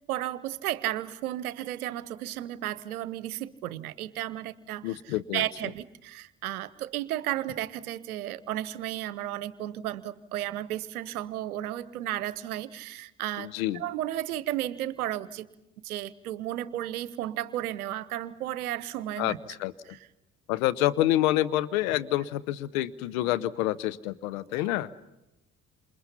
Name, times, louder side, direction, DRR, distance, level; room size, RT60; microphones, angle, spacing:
voice 1, 0.1-15.5 15.8-19.4 19.9-20.0, right 13 dB, 75° right, 18 dB, 0.9 m, -33 dB
voice 2, 4.8-5.4 13.4-13.8 19.2-19.3 19.6-19.7 20.5-24.9, left 15 dB, 70° left, 16 dB, 0.9 m, -27 dB
28.5 x 27.5 x 5.7 m, 0.93 s
figure-of-eight pair, 50°, 44 cm